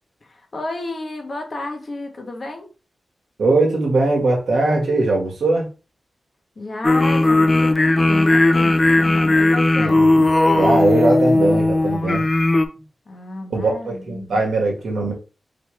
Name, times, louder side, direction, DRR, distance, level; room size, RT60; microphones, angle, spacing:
voice 1, 0.2-2.7 6.6-10.0 13.1-14.4, left 2 dB, 40° left, 1.1 m, -32 dB
voice 2, 3.4-5.7 9.8-12.3 13.5-15.1, right 2 dB, 80° right, 1.5 m, -20 dB
sound 1, 6.8-12.7, left 2 dB, 25° left, 0.4 m, -16 dB
4.0 x 3.4 x 3.2 m
wide cardioid pair, 150°, 0 cm